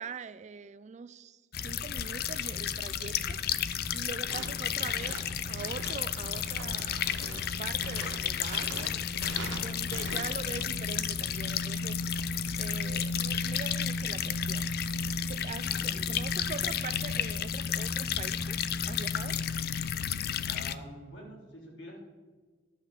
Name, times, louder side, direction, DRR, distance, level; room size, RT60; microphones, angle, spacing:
voice 1, 0.0-3.4 3.9-8.9 9.6-12.0 12.6-15.0 15.3-18.6 18.9-19.4, right 5 dB, 40° right, 0.3 m, -43 dB
sound 1, 1.5-20.7, left 7 dB, 55° left, 0.5 m, -32 dB
sound 2, 4.3-10.6, right 3 dB, 85° right, 1.5 m, -44 dB
voice 2, 15.6-16.0 20.4-22.0, equal, 75° left, 3.4 m, -47 dB
11.5 x 5.7 x 7.2 m
head